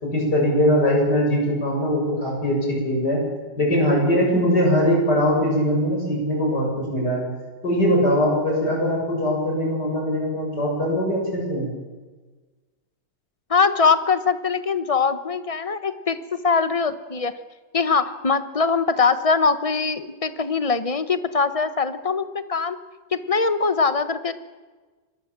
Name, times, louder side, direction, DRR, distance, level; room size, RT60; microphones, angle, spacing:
voice 1, 0.0-3.2 3.6-7.2 7.6-11.7, equal, 65° left, -1 dB, 7.9 m, -21 dB
voice 2, 13.5-17.3 17.7-22.8 23.1-24.3, left 4 dB, 25° left, 12 dB, 0.8 m, -22 dB
26.0 x 21.0 x 7.5 m, 1.3 s
omnidirectional pair, 1.9 m